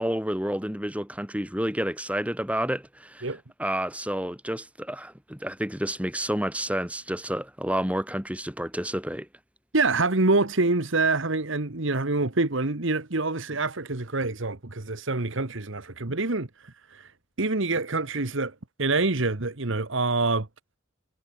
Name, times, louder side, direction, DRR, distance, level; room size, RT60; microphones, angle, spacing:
voice 1, 0.0-3.3 3.6-9.3, right 1 dB, 5° right, 5.0 m, -30 dB
voice 2, 9.7-17.1 17.4-20.5, right 3 dB, 60° right, 1.5 m, -26 dB
head